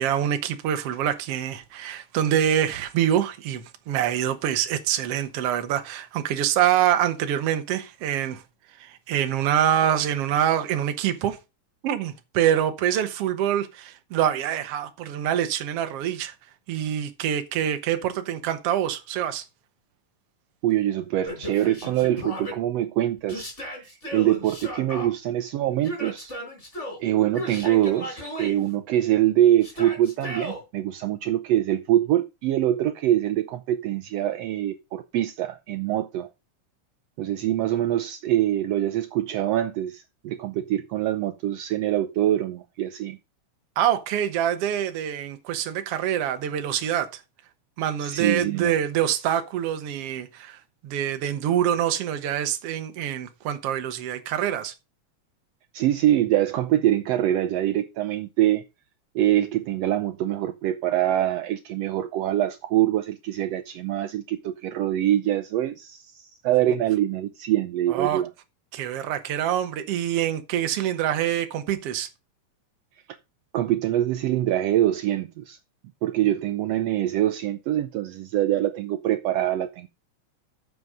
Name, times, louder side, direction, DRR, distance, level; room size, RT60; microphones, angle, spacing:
voice 1, 0.0-8.4 8.8-11.4 11.8-16.3 16.7-19.5 43.8-47.2 47.8-54.7 67.9-68.2 68.7-72.1, right 10 dB, 60° right, 1.9 m, -25 dB
voice 2, 20.6-23.5 23.8-26.3 27.0-36.3 37.2-43.2 48.0-48.7 55.7-58.6 59.1-68.3 73.5-75.6 76.0-79.9, right 12 dB, 75° right, 1.6 m, -24 dB
Yell, 21.2-22.5 23.3-25.1 25.8-27.0 27.3-28.6 29.6-30.6, equal, 20° left, 4.6 m, -35 dB
9.5 x 6.8 x 4.8 m
omnidirectional pair, 3.3 m